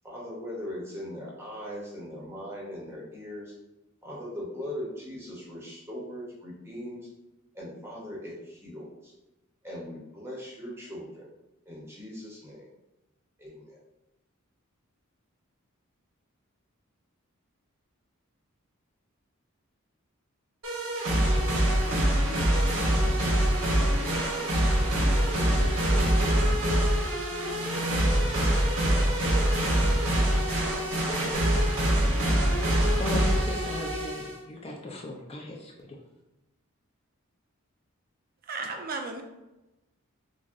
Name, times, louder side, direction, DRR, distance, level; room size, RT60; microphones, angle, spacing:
voice 1, 0.0-3.5 4.0-7.1 7.5-9.1 9.6-11.3 11.7-12.7 13.4-13.8, equal, 10° right, -4 dB, 0.7 m, -40 dB
sound 1, 20.6-34.4, right 1 dB, 75° right, 1.1 m, -24 dB
voice 2, 33.0-36.0, left 2 dB, 25° left, -1 dB, 0.5 m, -37 dB
voice 3, 38.4-39.2, right 3 dB, 40° right, 4 dB, 0.4 m, -34 dB
6.1 x 2.1 x 2.5 m, 1.0 s
head